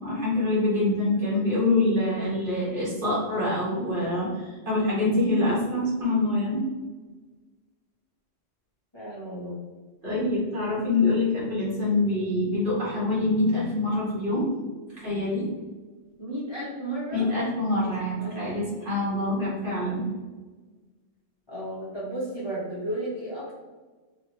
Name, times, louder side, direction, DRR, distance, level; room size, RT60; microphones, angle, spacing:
voice 1, 0.0-6.6 10.0-14.5 14.9-15.4 17.1-20.0, left 2 dB, 45° right, -7 dB, 1.2 m, -25 dB
voice 2, 8.9-9.6 16.2-17.3 18.2-18.6 21.5-23.5, right 1 dB, 25° left, -9 dB, 0.7 m, -33 dB
2.7 x 2.4 x 3.0 m, 1.3 s
omnidirectional pair, 1.3 m